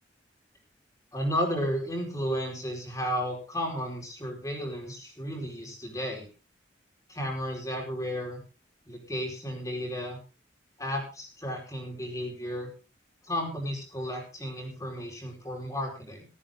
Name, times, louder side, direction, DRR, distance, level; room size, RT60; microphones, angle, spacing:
voice 1, 1.1-6.3 7.1-8.4 8.9-10.2 10.8-12.7 13.2-16.3, equal, 20° left, 1 dB, 4.9 m, -33 dB
15.5 x 14.5 x 3.8 m, 0.32 s
head